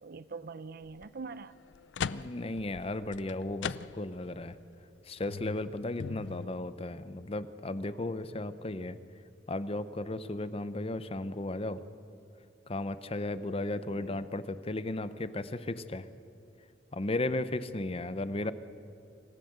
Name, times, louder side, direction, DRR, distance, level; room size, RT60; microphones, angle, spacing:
voice 1, 0.0-1.6 13.9-14.3 18.4-18.5, right 4 dB, 55° right, 14 dB, 0.6 m, -44 dB
sound 1, 0.8-1.0 1.6-4.3 4.7-4.8 5.2-6.5, left 6 dB, 70° left, 0.5 m, -40 dB
voice 2, 2.1-4.6 5.1-9.0 9.5-11.8 12.7-16.1 16.9-18.5, left 2 dB, 30° left, 13 dB, 0.8 m, -35 dB
26.0 x 15.0 x 8.0 m, 2.6 s
head